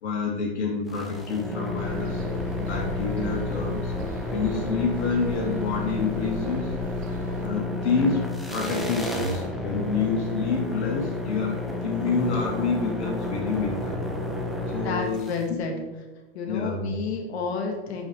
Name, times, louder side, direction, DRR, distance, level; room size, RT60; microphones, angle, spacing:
voice 1, 0.0-2.2 2.6-3.9 4.3-6.7 7.4-8.2 8.5-14.0 14.7-15.6 16.5-16.9, left 4 dB, 90° left, -1 dB, 2.6 m, -28 dB
sound 1, 0.9-15.4, left 2 dB, ahead, 0.4 m, -31 dB
sound 2, 1.8-7.5, right 1 dB, 25° right, 0.8 m, -38 dB
voice 2, 14.8-15.7 16.3-18.1, left 4 dB, 70° left, 2 dB, 1.8 m, -30 dB
8.3 x 5.7 x 3.3 m, 1.1 s
supercardioid pair, 140°, 33 cm